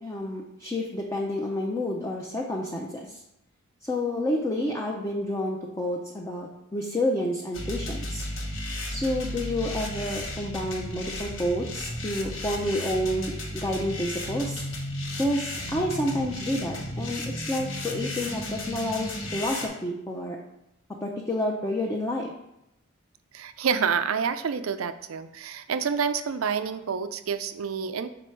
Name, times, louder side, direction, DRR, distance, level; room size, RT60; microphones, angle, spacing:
voice 1, 0.0-3.2 3.8-8.2 8.9-14.6 15.2-17.2 17.5-20.4 21.0-22.3, left 1 dB, 15° left, -1 dB, 0.6 m, -29 dB
sound 1, 7.5-19.7, left 1 dB, 65° left, 1.1 m, -34 dB
voice 2, 23.3-28.1, right 6 dB, 85° right, 11 dB, 0.5 m, -28 dB
6.0 x 4.1 x 4.5 m, 0.85 s
head